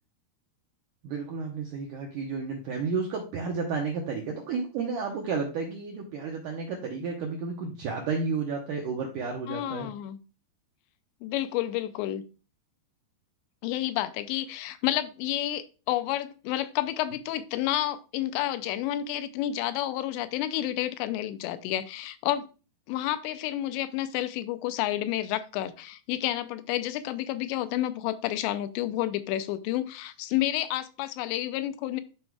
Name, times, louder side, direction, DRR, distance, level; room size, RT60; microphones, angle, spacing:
voice 1, 1.0-9.9, right 4 dB, 80° right, 1.8 m, -32 dB
voice 2, 9.5-10.2 11.2-12.2 13.6-22.5 22.9-32.0, left 13 dB, 85° left, 2.8 m, -30 dB
11.5 x 4.6 x 2.3 m
omnidirectional pair, 4.9 m